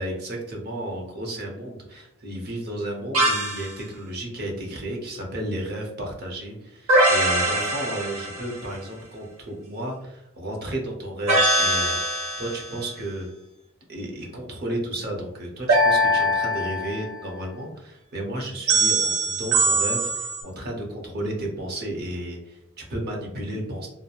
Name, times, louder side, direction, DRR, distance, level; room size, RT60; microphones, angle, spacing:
voice 1, 0.0-12.0 12.4-13.3 13.9-23.9, right 1 dB, 50° right, 0 dB, 0.8 m, -33 dB
sound 1, 3.1-3.7 6.9-8.6 11.3-12.7 15.7-17.2 18.7-20.4, right 1 dB, 80° right, 0.8 m, -22 dB
2.9 x 2.0 x 2.3 m, 0.85 s
head